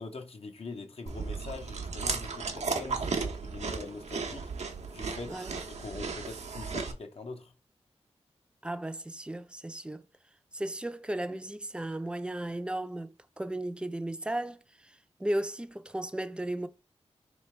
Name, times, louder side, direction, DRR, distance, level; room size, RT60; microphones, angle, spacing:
voice 1, 0.0-4.5 4.9-5.5 5.8-7.5, left 3 dB, 60° left, 0.6 m, -43 dB
Chewing mastication, 1.1-6.9, right 4 dB, 90° right, 0.8 m, -35 dB
voice 2, 8.6-10.1 10.5-16.7, right 1 dB, 10° right, 0.4 m, -35 dB
3.2 x 3.2 x 4.4 m
wide cardioid pair, 80°, 11 cm